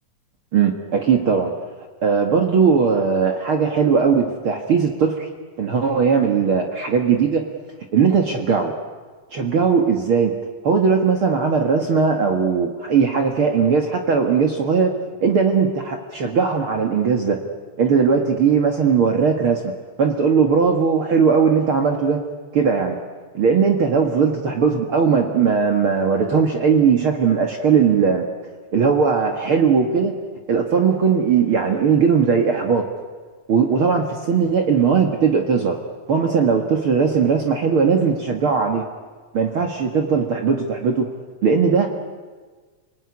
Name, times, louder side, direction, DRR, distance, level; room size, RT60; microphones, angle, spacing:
voice 1, 0.5-1.5 2.0-5.3 5.6-7.5 7.9-8.7 9.3-10.3 10.6-14.9 15.2-17.4 17.8-19.6 20.0-22.2 22.5-23.0 23.3-28.3 28.7-30.1 30.5-32.8 33.5-35.8 36.1-38.9 39.3-41.1 41.4-41.9, right 6 dB, 50° right, 3 dB, 2.3 m, -18 dB
29.5 x 19.5 x 9.8 m, 1.4 s
omnidirectional pair, 3.5 m